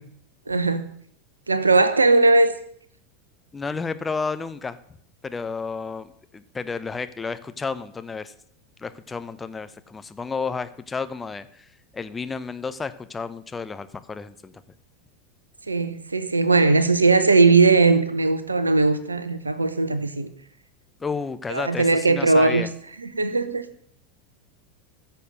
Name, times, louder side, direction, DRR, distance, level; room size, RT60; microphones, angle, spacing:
voice 1, 0.5-0.9 1.5-2.5 15.7-20.3 21.5-22.7 23.0-23.7, right 3 dB, 80° right, 0.9 m, -19 dB
voice 2, 3.5-4.8 5.2-8.3 8.8-11.7 11.9-14.5 21.0-22.7, left 4 dB, 15° left, 0.8 m, -31 dB
14.5 x 6.9 x 6.7 m
figure-of-eight pair, 80°, 0 cm